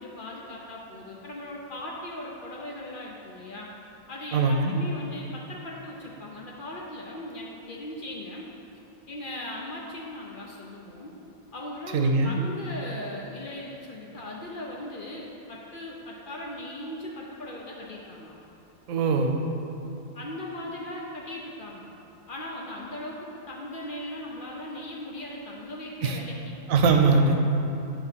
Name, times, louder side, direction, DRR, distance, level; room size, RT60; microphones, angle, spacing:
voice 1, 0.0-3.7 4.1-8.5 9.1-11.1 11.5-18.3 20.1-21.9 22.3-23.2 23.5-26.6, left 1 dB, 55° left, -3 dB, 0.6 m, -38 dB
voice 2, 4.3-4.7 11.9-12.3 18.9-19.4 26.0-26.2 26.7-27.4, right 4 dB, 85° right, 4 dB, 1.0 m, -21 dB
7.6 x 2.9 x 5.7 m, 2.9 s
omnidirectional pair, 1.4 m